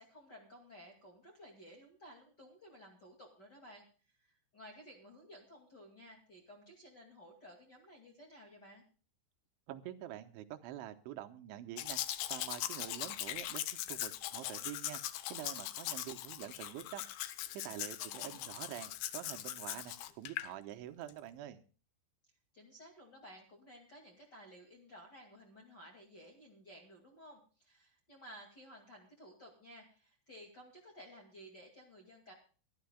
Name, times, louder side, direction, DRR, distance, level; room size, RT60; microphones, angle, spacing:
voice 1, 0.0-3.8 4.2-8.8 17.9-18.5 22.5-32.3, equal, 35° left, -1 dB, 1.8 m, -56 dB
voice 2, 9.7-12.0 12.3-15.0 15.3-17.0 17.5-21.6, right 12 dB, 85° right, 7 dB, 3.2 m, -46 dB
Domestic sounds home sounds, 11.8-20.5 21.1-21.2, left 13 dB, 80° left, 2.2 m, -40 dB
23.5 x 12.0 x 2.3 m, 0.38 s
omnidirectional pair, 5.4 m